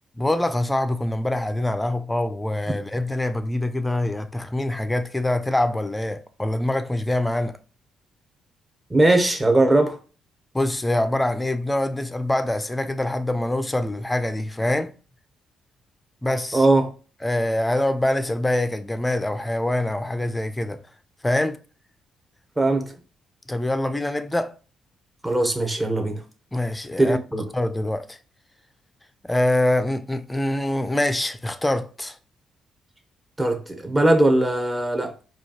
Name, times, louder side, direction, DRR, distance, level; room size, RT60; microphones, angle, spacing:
voice 1, 0.2-7.6 10.5-14.9 16.2-16.7 17.2-20.8 21.2-21.6 23.5-24.5 26.5-27.2 27.5-28.2 29.2-32.2, left 1 dB, 10° left, 0.5 m, -24 dB
voice 2, 8.9-10.0 16.5-16.9 22.6-22.9 25.2-26.2 27.0-27.4 33.4-35.1, right 2 dB, 15° right, 0.9 m, -20 dB
4.7 x 2.3 x 2.9 m
cardioid pair, 90°, 0 cm